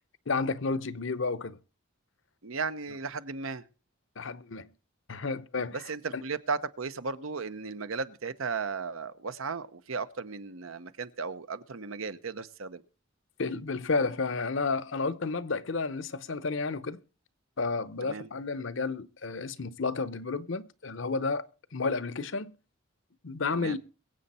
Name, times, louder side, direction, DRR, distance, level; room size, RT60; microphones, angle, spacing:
voice 1, 0.3-1.6 4.2-4.7 5.1-5.8 6.1-6.2 13.4-17.0 17.6-21.4 21.7-22.6 23.2-23.8, left 4 dB, 65° left, 0.7 m, -31 dB
voice 2, 2.4-3.6 5.7-12.8 18.0-18.3 23.5-23.8, right 4 dB, 80° right, 0.9 m, -35 dB
23.0 x 7.9 x 4.2 m
head